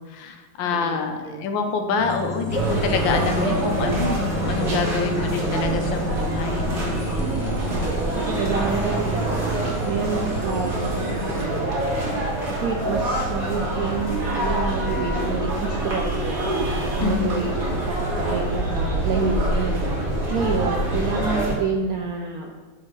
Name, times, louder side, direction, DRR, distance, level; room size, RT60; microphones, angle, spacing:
voice 1, 0.1-7.2 17.0-17.4, left 4 dB, 75° left, 5 dB, 1.4 m, -27 dB
voice 2, 0.6-1.0 1.2-1.5 7.8-11.7 12.5-16.4 16.7-22.5, right 5 dB, 80° right, 2 dB, 0.8 m, -29 dB
sound 1, 1.9-11.4, equal, 35° left, 0.3 m, -32 dB
sound 2, 2.5-21.5, right 1 dB, 50° right, 1.8 m, -25 dB
7.0 x 3.8 x 5.1 m, 1.3 s
omnidirectional pair, 2.1 m